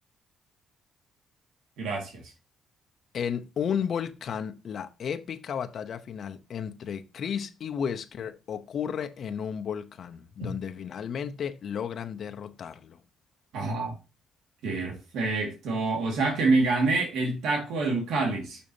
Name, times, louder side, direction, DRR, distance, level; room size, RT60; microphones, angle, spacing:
voice 1, 1.8-2.2 10.4-10.5 13.5-14.0 14.6-18.6, right 3 dB, 85° right, 2.1 m, -27 dB
voice 2, 3.1-13.0, left 7 dB, 60° left, 0.8 m, -33 dB
6.9 x 6.2 x 2.8 m
cardioid pair, 90°, 0 cm